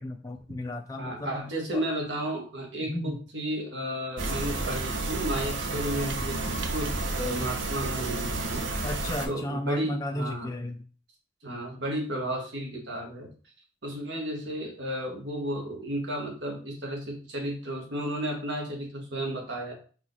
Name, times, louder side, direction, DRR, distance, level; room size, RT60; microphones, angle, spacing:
voice 1, 0.0-1.3 1.7-1.8 2.8-3.2 8.8-10.9, left 1 dB, 20° left, 3 dB, 0.4 m, -34 dB
voice 2, 1.0-6.4 6.7-8.7 9.3-10.5 11.4-13.3 13.8-19.7, right 1 dB, 65° right, 1 dB, 1.9 m, -33 dB
sound 1, 4.2-9.3, right 2 dB, 85° right, 1.0 m, -31 dB
4.8 x 4.7 x 4.1 m, 0.39 s
head